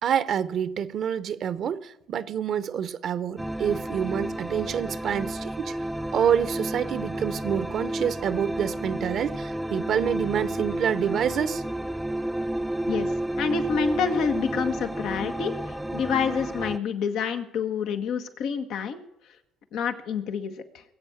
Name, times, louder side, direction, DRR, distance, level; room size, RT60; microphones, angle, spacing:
voice 1, 0.0-5.7 6.1-11.6, right 8 dB, 60° right, 0.9 m, -27 dB
sound 1, 3.4-16.8, right 1 dB, 5° right, 0.7 m, -31 dB
voice 2, 12.9-19.0 19.7-20.8, left 6 dB, 70° left, 1.5 m, -28 dB
20.5 x 8.3 x 7.3 m
supercardioid pair, 70°, 0 cm